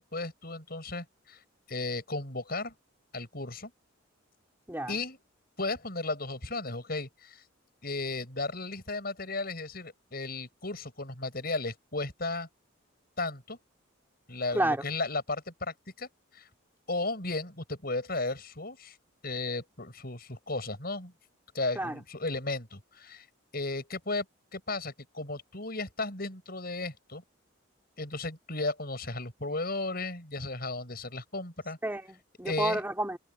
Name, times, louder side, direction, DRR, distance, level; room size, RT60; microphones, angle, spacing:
voice 1, 0.0-1.4 1.7-2.7 3.1-3.7 4.9-5.2 5.6-7.4 7.8-12.5 13.2-13.6 14.3-16.1 16.3-16.5 16.9-19.0 19.2-21.1 21.5-23.3 23.5-24.3 24.5-27.2 28.0-31.8 32.5-32.8, left 2 dB, 50° left, 7.2 m, -35 dB
voice 2, 31.8-33.2, right 1 dB, 10° right, 3.8 m, -30 dB
head